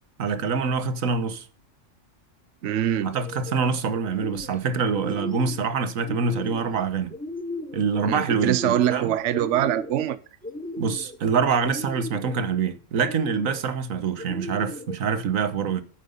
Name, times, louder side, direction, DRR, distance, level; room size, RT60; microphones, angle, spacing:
voice 1, 0.2-1.5 3.0-7.1 7.7-9.1 10.8-15.8, right 5 dB, 90° right, 1.5 m, -25 dB
voice 2, 2.6-3.1 8.0-10.2, right 11 dB, 70° right, 0.9 m, -24 dB
sound 1, 3.0-3.5 3.9-4.6 4.9-5.6 6.0-6.7 7.1-7.8 8.2-9.0 9.3-10.0 10.4-11.2 11.6-12.4 12.9-13.6 14.2-15.0, left 1 dB, 5° left, 0.9 m, -36 dB
9.0 x 7.8 x 5.3 m
omnidirectional pair, 1.4 m